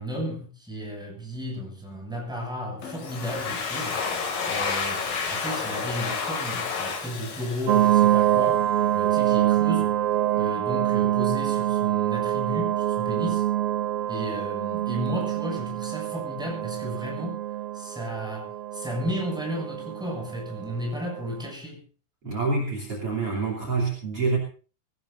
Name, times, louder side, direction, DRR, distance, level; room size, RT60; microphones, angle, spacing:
voice 1, 0.0-4.0 4.4-8.6 8.9-10.0 10.4-13.5 14.1-17.4 17.7-21.8, equal, ahead, 0 dB, 6.8 m, -34 dB
Domestic sounds home sounds, 2.8-8.4, left 5 dB, 85° left, 4.4 m, -30 dB
sound 1, 7.7-21.3, right 12 dB, 75° right, 1.4 m, -25 dB
voice 2, 22.2-24.4, right 4 dB, 45° right, -2 dB, 3.7 m, -26 dB
23.0 x 17.5 x 2.7 m, 0.37 s
omnidirectional pair, 3.8 m